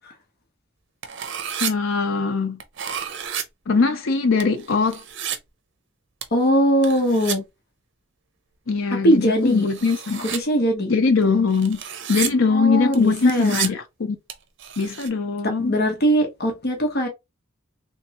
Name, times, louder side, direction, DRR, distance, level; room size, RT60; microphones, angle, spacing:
sound 1, 1.0-1.7 2.6-3.4 4.4-5.4 6.2-6.5 6.8-7.4 9.3-10.4 11.2-12.3 12.9-13.7 14.3-14.4 14.6-15.1, right 9 dB, 65° right, 0.7 m, -31 dB
voice 1, 1.6-2.6 3.7-5.0 8.7-10.2 10.9-11.8 12.1-14.2 14.8-15.8, left 4 dB, 75° left, 0.6 m, -21 dB
voice 2, 6.3-7.4 8.9-9.7 10.2-10.9 12.5-13.7 15.6-17.1, equal, 55° left, 1.0 m, -20 dB
3.4 x 3.1 x 2.9 m
head